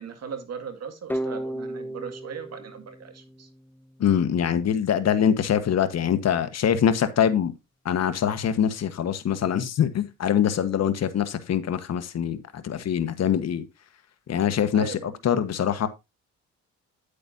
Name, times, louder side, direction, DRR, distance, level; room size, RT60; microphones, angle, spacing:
voice 1, 0.0-3.5 14.7-15.2, right 6 dB, 60° right, 2.1 m, -38 dB
sound 1, 1.1-3.9, right 1 dB, 5° left, 0.8 m, -34 dB
voice 2, 4.0-7.5 7.8-12.4 12.6-13.6 14.3-15.9, left 8 dB, 60° left, 1.3 m, -24 dB
9.8 x 8.4 x 2.7 m
cardioid pair, 90°, 30 cm